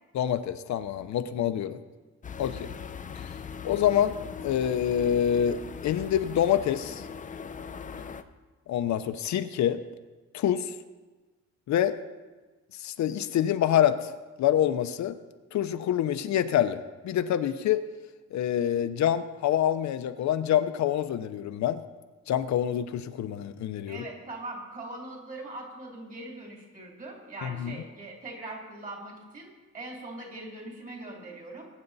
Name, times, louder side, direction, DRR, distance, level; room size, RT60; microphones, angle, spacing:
voice 1, 0.1-1.8 2.4-2.7 3.6-4.1 4.4-5.6 5.8-7.1 8.7-9.8 10.3-10.7 11.7-12.0 12.8-14.1 14.4-15.2 15.5-17.8 18.3-21.8 22.3-24.0 27.4-27.8, left 10 dB, 70° left, 10 dB, 0.7 m, -26 dB
sound 1, 2.2-8.2, left 6 dB, 25° left, 0.5 m, -40 dB
voice 2, 23.9-31.7, right 2 dB, 30° right, -1 dB, 3.0 m, -41 dB
21.0 x 9.2 x 4.0 m, 1.2 s
wide cardioid pair, 175°, 29 cm